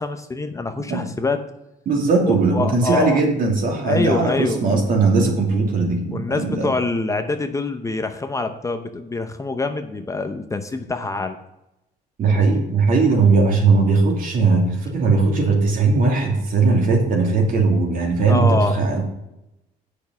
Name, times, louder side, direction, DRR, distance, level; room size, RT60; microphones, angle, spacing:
voice 1, 0.0-1.4 2.3-3.2 3.8-4.6 6.1-11.4 18.3-18.7, left 3 dB, 20° left, 7 dB, 0.7 m, -25 dB
voice 2, 1.9-6.7 12.2-19.1, right 3 dB, 55° right, 1 dB, 2.8 m, -18 dB
8.4 x 6.5 x 6.9 m, 0.90 s
cardioid pair, 110°, 17 cm